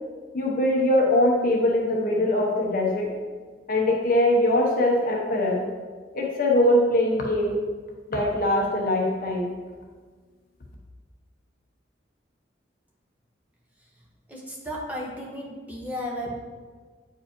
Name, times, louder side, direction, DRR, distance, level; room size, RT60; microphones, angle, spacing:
voice 1, 0.3-3.1 3.7-5.6 6.1-7.6 8.1-9.5, left 1 dB, 50° left, -1 dB, 0.9 m, -22 dB
voice 2, 14.3-16.4, equal, 10° right, -4 dB, 1.2 m, -34 dB
8.9 x 4.6 x 3.0 m, 1.5 s
head